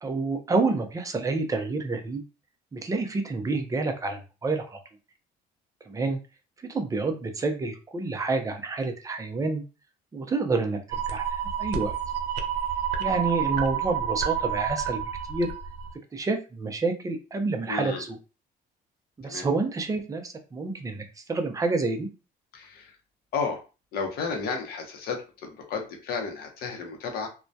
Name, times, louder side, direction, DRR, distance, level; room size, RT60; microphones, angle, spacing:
voice 1, 0.0-2.2 2.7-4.8 5.9-6.2 6.7-9.6 10.1-10.8 11.1-11.9 13.0-15.0 15.3-15.5 16.1-18.2 19.2-22.1, right 3 dB, 20° right, 5 dB, 0.5 m, -28 dB
sound 1, 10.9-15.9, right 8 dB, 75° right, 0.5 m, -29 dB
voice 2, 17.7-18.1 19.2-19.5 22.5-23.0 23.3-23.6 23.9-27.3, left 5 dB, 65° left, 3 dB, 0.7 m, -32 dB
2.2 x 2.1 x 2.6 m, 0.32 s
cardioid pair, 110°, 17 cm